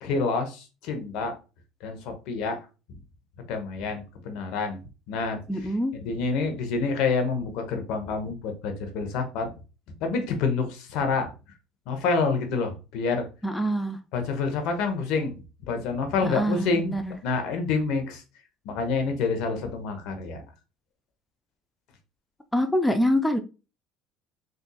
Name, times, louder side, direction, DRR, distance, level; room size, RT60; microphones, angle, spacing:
voice 1, 0.0-1.3 1.8-2.6 3.5-4.8 5.1-5.4 6.0-9.5 10.0-11.3 11.9-13.3 14.1-15.3 15.6-17.0 17.2-18.2 18.6-20.4, left 4 dB, 70° left, 6 dB, 0.8 m, -27 dB
voice 2, 5.5-5.9 13.4-14.0 16.2-17.2 22.5-23.4, equal, 10° left, 7 dB, 0.4 m, -25 dB
3.8 x 2.6 x 2.2 m, 0.31 s
hypercardioid pair, 80°, 0 cm